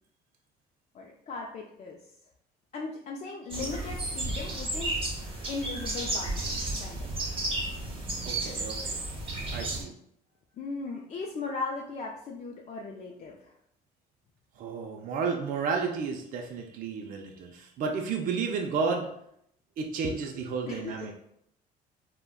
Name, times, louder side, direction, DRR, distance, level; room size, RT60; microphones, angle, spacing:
voice 1, 0.9-2.1 2.7-4.9 5.5-7.2 10.6-13.5 20.7-21.1, left 3 dB, 40° left, -1 dB, 0.4 m, -38 dB
sound 1, 3.5-9.8, right 2 dB, 30° right, 0.8 m, -33 dB
voice 2, 8.2-9.0 9.5-9.9 14.6-19.1 19.8-21.1, right 5 dB, 55° right, 2 dB, 0.4 m, -32 dB
3.4 x 2.1 x 2.2 m, 0.73 s
cardioid pair, 110°, 17 cm